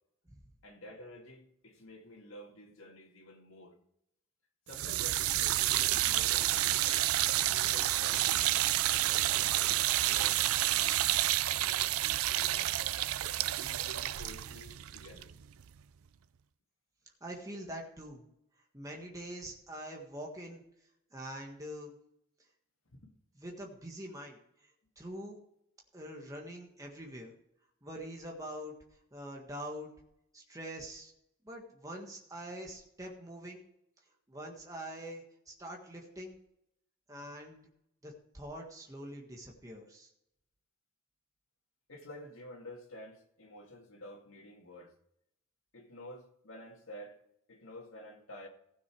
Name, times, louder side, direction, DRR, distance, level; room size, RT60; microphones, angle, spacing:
voice 1, 0.6-3.8 4.7-7.1 7.3-8.5 8.9-11.3 11.5-12.8 13.6-15.4 22.9-23.1 41.9-44.9 45.7-47.2 47.5-48.5, left 1 dB, 70° left, 2.3 m, -51 dB
sound 1, 4.7-15.8, right 14 dB, 85° right, 0.4 m, -29 dB
voice 2, 17.2-18.2 18.7-20.6 21.1-21.9 23.4-24.4 24.9-25.4 25.9-27.3 27.8-28.7 29.1-29.9 30.3-31.1 31.4-33.6 34.3-36.4 37.1-37.6 38.0-40.1, equal, 15° right, 1.6 m, -44 dB
15.5 x 6.8 x 4.7 m
head